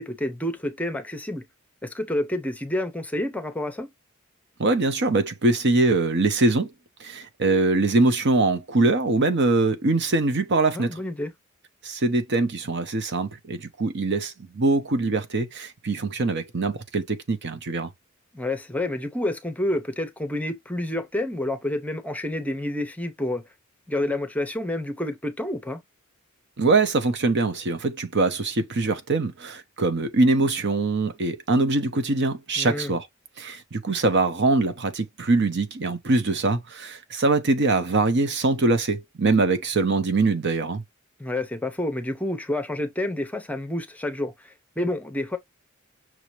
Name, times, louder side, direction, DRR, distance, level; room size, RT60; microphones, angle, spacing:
voice 1, 0.0-1.4 1.8-3.9 10.7-11.3 18.3-23.4 23.9-25.8 32.6-32.9 41.2-45.4, left 1 dB, 5° left, 0.7 m, -29 dB
voice 2, 4.6-6.7 7.0-10.9 11.8-17.9 26.6-33.1 33.4-40.8, right 3 dB, 55° right, 0.8 m, -23 dB
6.1 x 2.8 x 3.0 m
head